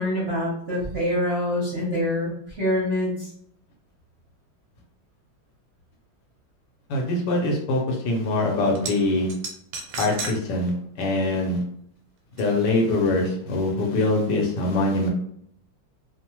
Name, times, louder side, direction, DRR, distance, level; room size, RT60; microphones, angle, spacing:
voice 1, 0.0-3.3, left 1 dB, 50° right, -6 dB, 0.8 m, -25 dB
voice 2, 6.9-9.3 10.0-10.7 11.0-11.6 12.4-15.1, left 2 dB, 70° left, 1 dB, 1.2 m, -23 dB
sound 1, 8.7-8.9 9.3-10.4 10.8-10.9 12.4-12.5, right 4 dB, 85° right, 1.3 m, -32 dB
3.1 x 2.0 x 2.9 m, 0.66 s
omnidirectional pair, 2.0 m